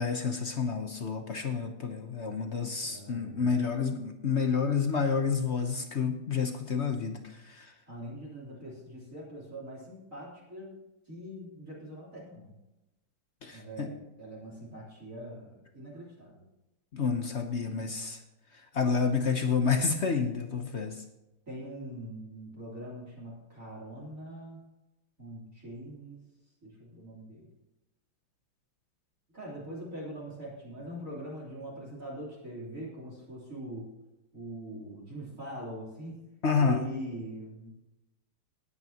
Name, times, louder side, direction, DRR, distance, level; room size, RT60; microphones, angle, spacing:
voice 1, 0.0-7.7 13.4-13.9 16.9-18.2 18.5-21.0 36.4-36.8, left 5 dB, 60° left, 5 dB, 0.7 m, -29 dB
voice 2, 2.8-3.5 7.9-10.8 11.1-12.5 13.5-16.4 21.5-24.6 25.2-26.2 26.6-27.5 29.3-33.9 34.3-36.2 36.6-37.7, right 1 dB, 35° right, -5 dB, 3.7 m, -43 dB
17.5 x 9.8 x 2.9 m, 0.96 s
omnidirectional pair, 2.4 m